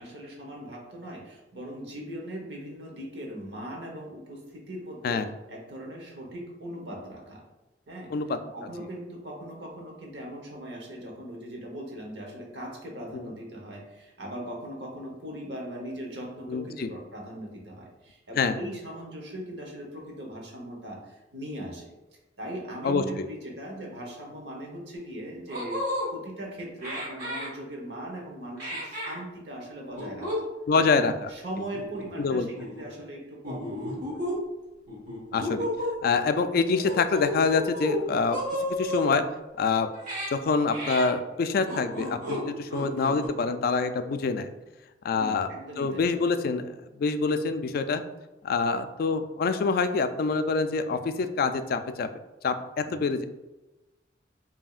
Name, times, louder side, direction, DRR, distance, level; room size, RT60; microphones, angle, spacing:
voice 1, 0.0-5.2 5.5-7.4 7.9-8.1 8.5-21.9 22.4-30.4 30.8-31.0 31.3-34.3 45.1-46.1 52.8-53.1, right 1 dB, 70° right, 0 dB, 1.0 m, -39 dB
voice 2, 16.5-16.9 18.4-18.6 22.8-23.0 30.7-31.3 32.2-32.5 35.3-35.7 36.0-39.2 39.6-39.9 40.3-44.5 45.0-45.5 45.8-46.6 47.0-48.0 48.4-52.1 52.4-53.2, left 4 dB, 55° left, 10 dB, 0.3 m, -26 dB
sound 1, 25.0-25.1 25.5-26.1 26.8-27.5 28.6-29.2 29.9-30.4 30.7-30.9 31.7-32.3 32.6-32.8 33.4-34.3 34.9-36.0 36.8-38.0 38.3-39.1 39.9-40.3 40.7-41.1 41.6-42.4 42.7-43.3, left 1 dB, 45° right, 1.3 m, -32 dB
5.1 x 2.8 x 2.4 m, 1.0 s
head